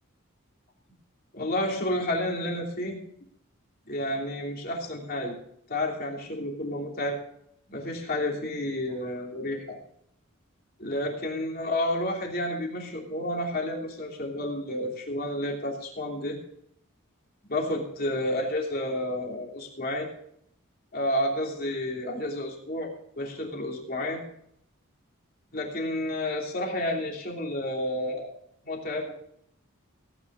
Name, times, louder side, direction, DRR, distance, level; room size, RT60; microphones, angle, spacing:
voice 1, 1.3-3.0 3.9-5.3 5.7-7.2 7.7-9.8 10.8-16.4 17.5-20.1 20.9-22.9 23.2-24.2 25.5-28.3 28.6-29.1, left 1 dB, 45° left, 0 dB, 3.0 m, -30 dB
17.0 x 9.4 x 3.9 m, 0.70 s
head